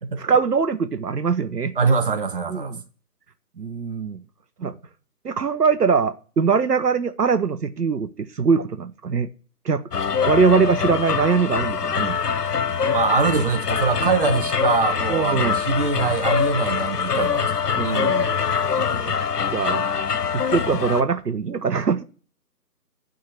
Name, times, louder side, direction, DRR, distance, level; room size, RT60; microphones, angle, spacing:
voice 1, 0.2-1.7 2.5-2.8 3.6-4.2 4.6-4.7 5.2-9.3 9.6-9.9 10.3-12.2 15.1-15.6 17.8-18.3 18.7-19.1 19.5-19.9 20.3-22.0, right 5 dB, 75° right, 0.8 m, -22 dB
voice 2, 1.8-2.8 12.6-17.5 18.4-18.6, right 4 dB, 35° right, 0.9 m, -23 dB
sound 1, 9.9-21.0, left 6 dB, 75° left, 0.8 m, -24 dB
9.8 x 3.7 x 7.1 m
figure-of-eight pair, 145°, 48 cm